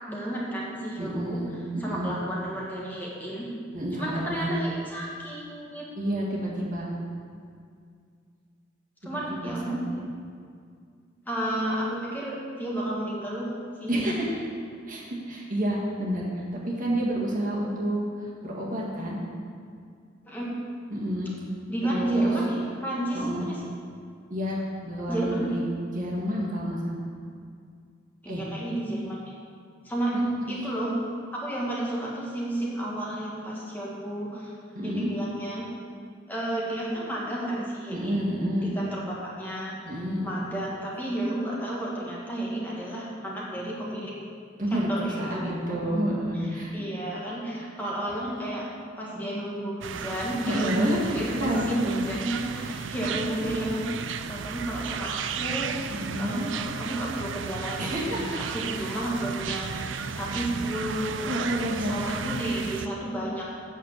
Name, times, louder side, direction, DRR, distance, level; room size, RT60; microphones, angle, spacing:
voice 1, 0.0-1.4 1.8-3.5 3.9-5.9 9.0-9.9 11.3-13.5 13.8-14.2 20.2-20.6 21.7-23.6 25.1-25.6 28.2-29.2 29.8-30.2 30.5-31.0 31.3-34.6 34.8-35.7 36.3-38.3 38.6-39.8 40.2-44.2 44.7-45.8 46.3-48.7 49.0-53.9 54.3-55.7 56.2-61.4 61.8-63.6, right 1 dB, 10° left, -5 dB, 1.5 m, -32 dB
voice 2, 1.0-2.2 3.7-4.6 6.0-6.9 9.0-10.0 13.9-14.3 14.9-16.3 16.7-18.0 18.4-19.2 20.9-21.3 21.8-22.3 23.1-23.5 24.3-25.6 25.9-27.0 28.3-28.4 30.1-30.4 34.7-35.1 37.9-38.7 39.9-40.3 44.6-46.7 50.4-51.0 51.3-52.1 55.9-56.5 57.8-58.2 58.7-58.9 60.3-60.4 61.2-62.0, equal, 40° right, -4 dB, 1.8 m, -29 dB
sound 1, 49.8-62.9, right 6 dB, 65° right, 0.4 m, -34 dB
8.2 x 6.7 x 7.3 m, 2.2 s
head